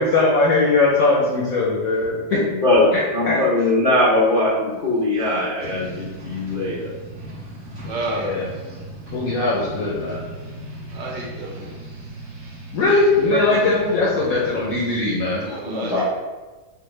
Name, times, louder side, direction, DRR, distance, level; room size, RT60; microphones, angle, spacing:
voice 1, 0.0-2.4 2.9-3.4 8.1-8.5 9.1-10.2 12.7-15.5, left 3 dB, 65° left, -4 dB, 0.9 m, -20 dB
voice 2, 2.5-6.9 13.3-13.7 15.6-16.0, left 2 dB, 85° left, -9 dB, 0.4 m, -21 dB
sound 1, 5.6-14.9, right 1 dB, 45° right, 1.0 m, -37 dB
voice 3, 7.8-8.3 10.9-11.7 15.4-16.0, right 2 dB, 70° right, -3 dB, 1.4 m, -30 dB
4.6 x 2.2 x 3.2 m, 1.3 s
omnidirectional pair, 2.0 m